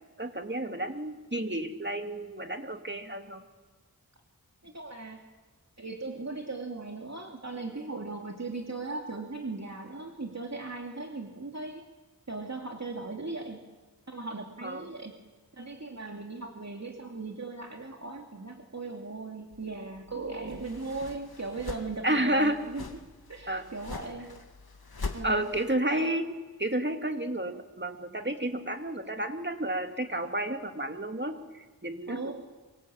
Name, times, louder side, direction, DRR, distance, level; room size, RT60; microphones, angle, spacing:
voice 1, 0.2-3.4 14.6-14.9 22.0-22.7 23.5-23.7 25.2-26.3 26.6-32.3, right 1 dB, 30° right, 5 dB, 2.4 m, -31 dB
voice 2, 4.6-5.2 5.8-11.8 12.3-13.7 14.1-15.2 15.5-22.9 23.3-24.3 25.1-25.5 32.1-32.3, right 3 dB, 45° right, 2 dB, 2.7 m, -38 dB
sound 1, 19.5-25.8, left 3 dB, 85° left, 2.3 m, -43 dB
25.0 x 22.5 x 8.8 m, 1.3 s
wide cardioid pair, 55°, 36 cm